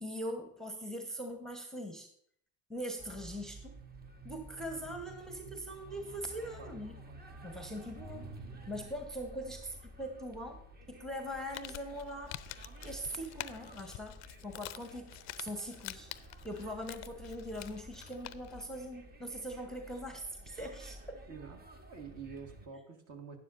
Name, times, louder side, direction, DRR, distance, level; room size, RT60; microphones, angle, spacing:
voice 1, 0.0-2.1 2.7-3.8 4.2-7.0 7.4-8.4 8.7-12.4 12.8-15.1 15.4-16.1 16.4-21.2, equal, ahead, 4 dB, 1.1 m, -42 dB
sound 1, 3.0-22.7, right 2 dB, 20° right, 1.1 m, -52 dB
Crumpling crinkling, 11.2-18.7, left 16 dB, 40° left, 0.5 m, -48 dB
voice 2, 21.3-23.4, right 6 dB, 40° right, 4 dB, 1.8 m, -48 dB
12.0 x 9.8 x 2.6 m, 0.67 s
hypercardioid pair, 75°, 42 cm